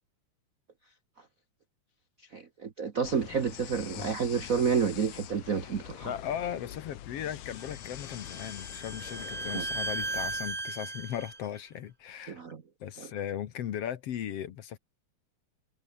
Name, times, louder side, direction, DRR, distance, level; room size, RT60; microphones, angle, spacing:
voice 1, 2.3-6.1 9.5-9.6 12.3-12.6 13.0-13.1, right 6 dB, 85° right, 0.7 m, -30 dB
sound 1, 3.0-10.6, left 13 dB, 85° left, 2.7 m, -44 dB
voice 2, 6.0-12.4 12.8-14.8, left 10 dB, 60° left, 2.0 m, -37 dB
Bowed string instrument, 7.6-11.4, right 3 dB, 20° right, 2.1 m, -36 dB
omnidirectional pair, 3.5 m